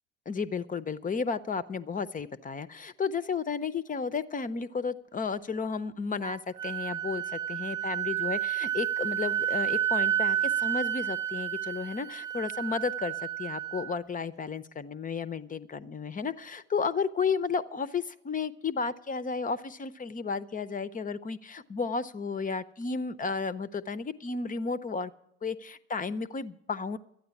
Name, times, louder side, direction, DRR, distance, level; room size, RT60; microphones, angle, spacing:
voice 1, 0.3-13.1 13.4-25.1 25.4-27.0, left 5 dB, 20° left, 14 dB, 0.7 m, -33 dB
Wind instrument woodwind instrument, 6.2-14.0, right 11 dB, 10° right, 1.0 m, -31 dB
13.0 x 9.3 x 7.1 m, 0.73 s
hypercardioid pair, 65°, 36 cm